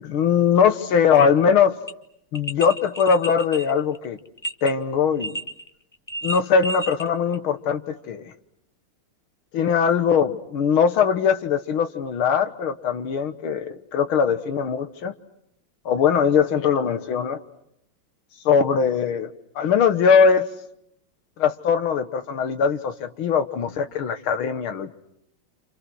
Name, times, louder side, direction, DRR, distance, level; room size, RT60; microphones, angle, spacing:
voice 1, 0.0-1.8 2.3-4.2 4.6-5.4 6.2-8.3 9.5-15.1 15.9-17.4 18.5-20.5 21.4-24.9, left 6 dB, 75° left, 10 dB, 2.1 m, -21 dB
sound 1, 1.1-1.3 1.9-2.0 2.3-4.7 5.2-5.7 5.9-7.1 7.3-7.4, right 1 dB, 15° left, 0.8 m, -32 dB
29.5 x 27.0 x 6.3 m, 0.77 s
omnidirectional pair, 2.3 m